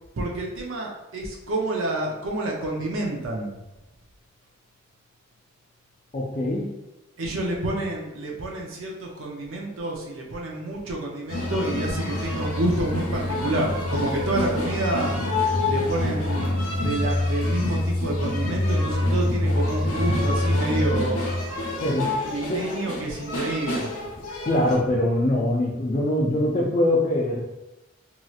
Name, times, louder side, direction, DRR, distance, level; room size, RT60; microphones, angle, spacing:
voice 1, 0.2-3.5 7.2-15.1 15.6-21.2 22.2-23.9, right 2 dB, 65° right, -1 dB, 0.6 m, -28 dB
voice 2, 6.1-6.7 21.8-22.1 22.5-22.6 24.5-27.4, left 1 dB, 30° left, -4 dB, 0.4 m, -23 dB
sound 1, 11.3-24.7, left 1 dB, 80° left, 0.7 m, -26 dB
3.0 x 2.8 x 2.3 m, 0.99 s
head